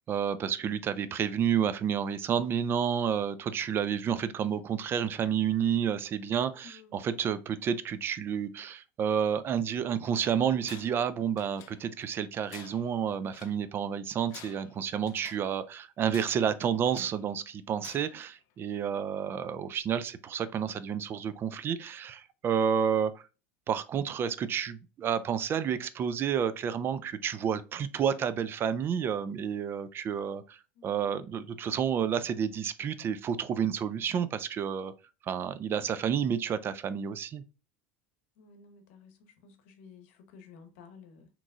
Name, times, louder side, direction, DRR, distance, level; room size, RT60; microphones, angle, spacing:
voice 1, 0.1-23.2 23.7-34.9 35.2-37.4, right 8 dB, 35° right, 0.3 m, -30 dB
voice 2, 6.6-6.9 30.7-31.5 35.8-36.3 38.4-41.3, left 5 dB, 75° left, 0.8 m, -55 dB
Tools, 10.6-11.1 11.4-12.1 12.5-13.6 14.2-15.5 16.1-17.2 17.8-18.3, left 10 dB, 55° left, 0.5 m, -51 dB
3.8 x 3.0 x 2.3 m
supercardioid pair, 110°, 7 cm